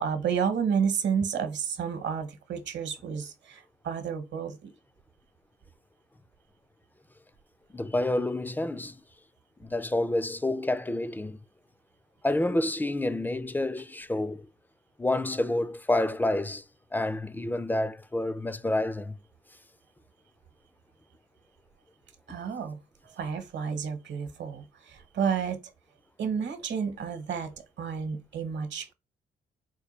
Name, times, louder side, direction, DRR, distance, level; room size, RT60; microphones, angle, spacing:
voice 1, 0.0-4.7 22.3-22.8 23.0-25.6 26.2-28.9, right 7 dB, 65° right, 1.0 m, -31 dB
voice 2, 7.7-9.0 9.6-11.4 12.2-14.5 15.0-16.6 16.9-19.2, left 1 dB, 10° left, 0.3 m, -28 dB
4.4 x 2.3 x 3.0 m
cardioid pair, 90°, 20 cm